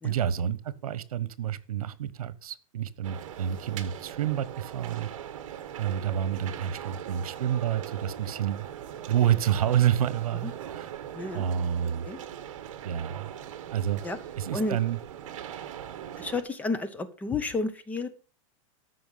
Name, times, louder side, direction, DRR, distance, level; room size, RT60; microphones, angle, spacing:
voice 1, 0.0-5.1 5.8-8.7 9.1-10.9 11.3-12.1 12.8-13.3 13.7-14.0 14.4-15.0, right 10 dB, 80° right, 1.2 m, -28 dB
sound 1, 3.0-16.4, right 10 dB, 60° right, 1.4 m, -40 dB
voice 2, 11.1-11.4 12.0-12.2 14.0-14.2 14.5-14.8 16.2-18.1, left 3 dB, 10° left, 0.7 m, -31 dB
13.5 x 6.1 x 5.5 m
supercardioid pair, 160°, 18 cm